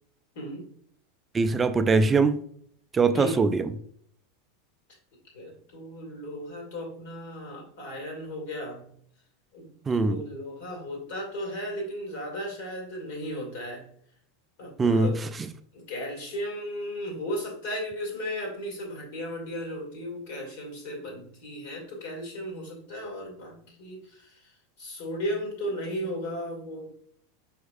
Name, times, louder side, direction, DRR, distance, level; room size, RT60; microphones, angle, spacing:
voice 1, 0.4-0.7 3.1-3.6 5.3-8.9 9.5-13.8 14.6-15.2 15.7-24.3 24.8-27.0, equal, 60° left, 0 dB, 1.9 m, -35 dB
voice 2, 1.3-2.4 2.9-3.7 9.9-10.2 14.8-15.5, right 4 dB, 20° right, 10 dB, 0.3 m, -22 dB
5.1 x 4.5 x 2.3 m, 0.63 s
figure-of-eight pair, 85°, 0 cm